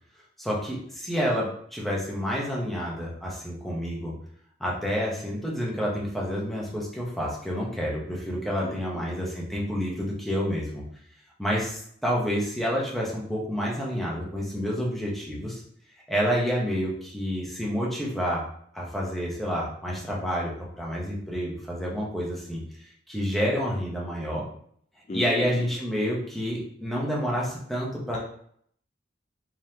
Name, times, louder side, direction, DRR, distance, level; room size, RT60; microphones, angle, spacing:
voice 1, 0.4-4.1 4.6-10.8 11.4-15.6 16.1-18.4 18.7-20.5 20.8-24.4 25.1-28.2, equal, ahead, -4 dB, 0.8 m, -29 dB
voice 2, 8.6-9.2 25.1-25.6, left 2 dB, 35° left, 0 dB, 0.3 m, -36 dB
3.7 x 3.1 x 2.8 m, 0.64 s
head